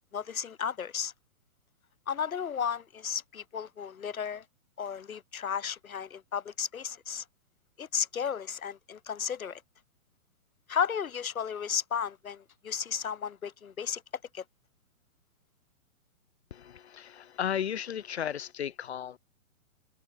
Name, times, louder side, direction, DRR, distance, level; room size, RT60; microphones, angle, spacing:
voice 1, 0.1-1.1 2.1-4.4 4.8-7.2 7.8-9.6 10.7-14.0 14.3-14.4, left 7 dB, 80° left, 2.8 m, -34 dB
voice 2, 16.5-19.2, left 9 dB, 50° left, 2.8 m, -34 dB
hypercardioid pair, 175°, 42 cm